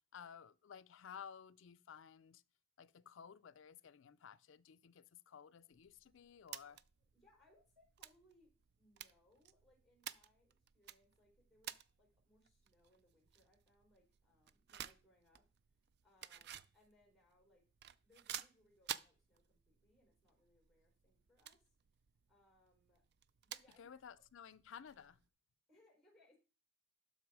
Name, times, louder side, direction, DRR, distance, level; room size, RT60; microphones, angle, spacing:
voice 1, 0.1-2.4 2.8-6.8 23.8-25.2, left 7 dB, 70° left, 0.4 m, -55 dB
sound 1, 5.7-25.3, right 10 dB, 55° right, 0.4 m, -54 dB
voice 2, 7.1-8.5 8.8-15.4 16.0-17.6 18.0-21.7 22.3-23.0 23.4-23.9 25.7-26.4, left 1 dB, ahead, 4.0 m, -72 dB
12.0 x 4.1 x 4.7 m
head